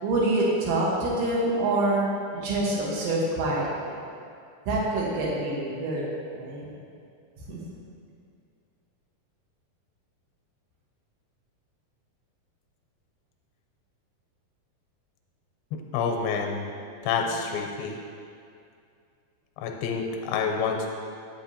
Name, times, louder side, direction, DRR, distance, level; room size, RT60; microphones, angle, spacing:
voice 1, 0.0-3.9 4.7-6.0 6.3-6.7 7.5-7.6, right 2 dB, 70° right, -4 dB, 2.8 m, -26 dB
voice 2, 15.7-16.7 17.0-18.0 19.6-20.9, left 5 dB, 90° left, 2 dB, 2.5 m, -28 dB
8.7 x 7.8 x 2.8 m, 2.4 s
omnidirectional pair, 4.3 m